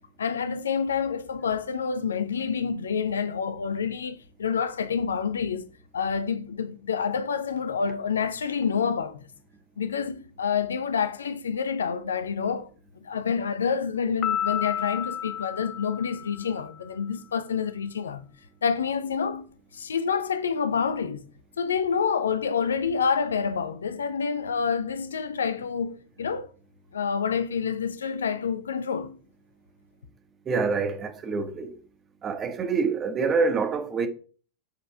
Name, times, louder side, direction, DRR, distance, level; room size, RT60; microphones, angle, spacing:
voice 1, 0.2-5.7 5.9-9.3 9.8-12.7 13.0-18.2 18.6-21.3 21.6-26.5 26.9-29.2, left 6 dB, 70° left, 0.8 m, -28 dB
Piano, 14.2-16.8, left 9 dB, 30° left, 0.5 m, -31 dB
voice 2, 30.4-31.8 32.2-34.1, right 4 dB, 25° right, 1.5 m, -26 dB
8.7 x 4.9 x 4.8 m
figure-of-eight pair, 90°, 0 cm